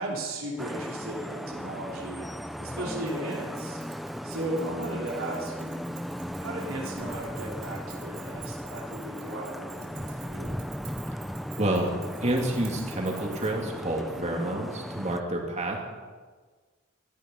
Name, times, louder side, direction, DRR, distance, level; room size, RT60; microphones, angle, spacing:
voice 1, 0.0-2.3 2.6-3.8 4.2-5.9 6.4-10.6, right 1 dB, 85° right, -3 dB, 3.4 m, -36 dB
Vehicle horn car horn honking / Traffic noise roadway noise, 0.6-15.2, equal, ahead, 0.5 m, -37 dB
Keys jangling, 3.1-13.7, right 10 dB, 50° right, 5.1 m, -50 dB
voice 2, 11.6-11.9 12.2-15.8, right 1 dB, 35° right, 0 dB, 2.9 m, -28 dB
18.5 x 13.5 x 5.6 m, 1.4 s
head